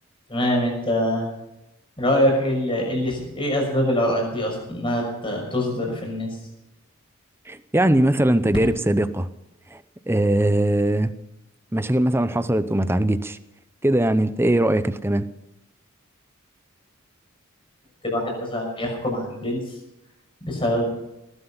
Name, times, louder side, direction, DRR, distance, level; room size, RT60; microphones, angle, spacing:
voice 1, 0.3-1.2 2.0-6.4 18.0-19.6 20.4-20.9, equal, 25° left, 1 dB, 6.2 m, -24 dB
voice 2, 7.5-9.3 9.7-9.8 10.1-11.1 11.7-13.4 13.8-15.3, right 1 dB, 10° right, 12 dB, 0.7 m, -20 dB
18.5 x 12.0 x 5.7 m, 0.91 s
head